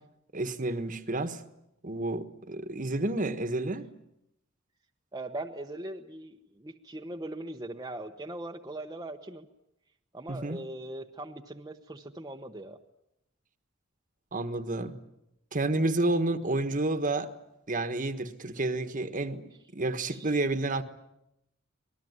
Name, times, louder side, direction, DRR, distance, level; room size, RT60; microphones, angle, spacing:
voice 1, 0.3-1.4 1.8-3.9 10.3-10.6 14.3-15.0 15.5-17.3 17.7-19.4 19.7-20.8, right 2 dB, 40° right, 9 dB, 1.5 m, -30 dB
voice 2, 5.1-9.5 10.1-12.8 19.0-19.3 20.1-20.4, right 1 dB, 20° right, 2 dB, 1.0 m, -40 dB
26.0 x 19.5 x 9.6 m, 0.85 s
head